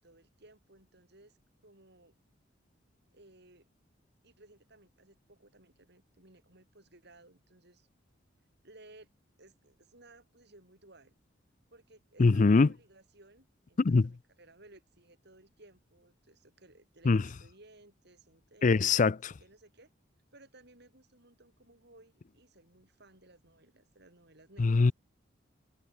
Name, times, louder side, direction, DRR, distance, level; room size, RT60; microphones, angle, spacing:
voice 1, 0.0-1.4 1.6-2.1 3.1-3.7 4.2-7.9 8.6-9.1 9.4-11.1 11.7-19.9 20.3-24.9, right 2 dB, 60° right, 7.0 m, -59 dB
voice 2, 12.2-12.7 13.8-14.1 17.1-17.2 18.6-19.2 24.6-24.9, left 4 dB, 40° left, 0.5 m, -22 dB
head